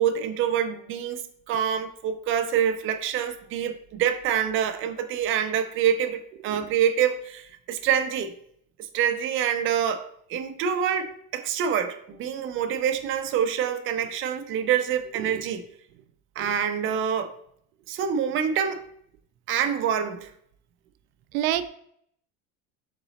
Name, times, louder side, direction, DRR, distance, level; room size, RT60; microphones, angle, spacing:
voice 1, 0.0-8.3 8.9-15.6 16.4-17.3 17.9-18.8 19.5-20.3, right 8 dB, 30° right, 8 dB, 0.4 m, -26 dB
voice 2, 6.3-6.7 15.1-15.5 16.4-16.5 21.3-21.7, right 12 dB, 85° right, 11 dB, 0.5 m, -29 dB
3.9 x 3.0 x 4.0 m, 0.66 s
supercardioid pair, 120°, 41 cm